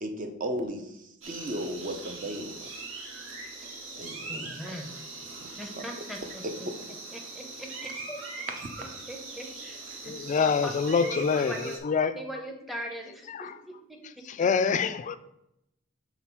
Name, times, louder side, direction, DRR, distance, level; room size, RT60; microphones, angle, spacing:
voice 1, 0.0-0.9 1.3-2.7 4.0-4.6 5.4-5.5 6.4-6.8, equal, 40° right, 0.7 m, -35 dB
sound 1, 1.2-11.8, right 3 dB, 75° right, 1.1 m, -41 dB
voice 2, 4.3-4.9 5.6-8.5 8.8-10.2 10.6-11.8 12.1-14.3, equal, ahead, 0.8 m, -41 dB
voice 3, 10.0-12.2 13.3-13.6 14.0-15.2, left 5 dB, 40° left, 0.3 m, -26 dB
5.8 x 3.9 x 4.5 m
head